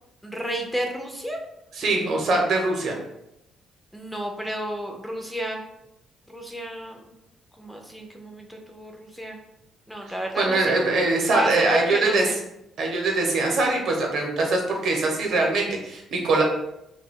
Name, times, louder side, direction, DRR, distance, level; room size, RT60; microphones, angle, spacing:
voice 1, 0.2-1.4 3.9-5.6 6.3-7.2 7.6-9.4 9.9-10.8 11.3-11.6 11.9-12.3, equal, ahead, 2 dB, 0.3 m, -32 dB
voice 2, 1.7-3.0 10.4-12.3 12.8-16.4, right 2 dB, 65° right, 1 dB, 0.7 m, -22 dB
2.3 x 2.2 x 3.5 m, 0.85 s
cardioid pair, 125°, 0 cm